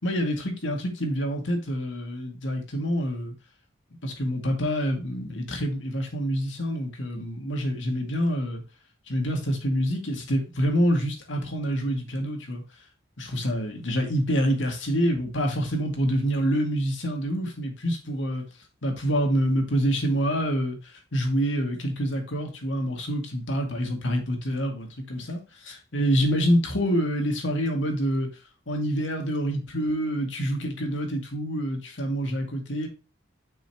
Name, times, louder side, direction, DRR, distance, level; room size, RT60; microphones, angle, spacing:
voice 1, 0.0-3.3 4.0-8.6 9.1-12.6 13.2-18.4 18.8-28.3 28.7-32.9, equal, 85° left, 2.2 m, -27 dB
7.0 x 5.7 x 2.9 m
head